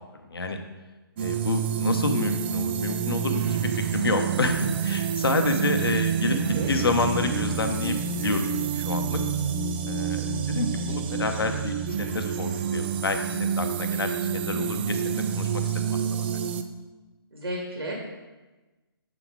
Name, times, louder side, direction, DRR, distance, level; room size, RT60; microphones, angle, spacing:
voice 1, 1.2-6.4 6.7-9.2 9.9-16.0, left 3 dB, 70° left, 6 dB, 0.9 m, -29 dB
sound 1, 1.2-16.6, right 7 dB, 25° right, 0.4 m, -28 dB
voice 2, 6.3-6.7 17.3-17.9, right 1 dB, 80° right, -1 dB, 1.7 m, -33 dB
7.7 x 4.0 x 4.6 m, 1.2 s
figure-of-eight pair, 140°, 13 cm